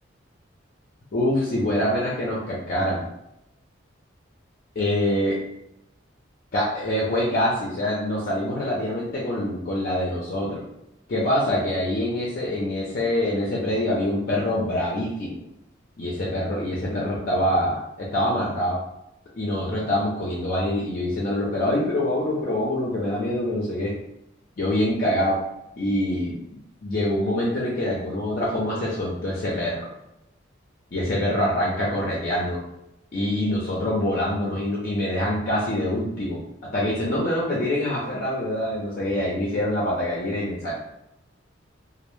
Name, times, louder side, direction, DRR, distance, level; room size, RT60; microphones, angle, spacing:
voice 1, 1.1-3.0 4.8-5.4 6.5-10.6 11.1-15.4 16.0-18.8 19.3-24.0 24.6-25.4 25.8-29.8 30.9-32.6 33.1-40.7, left 1 dB, 50° left, -5 dB, 0.5 m, -25 dB
2.0 x 2.0 x 3.0 m, 0.84 s
head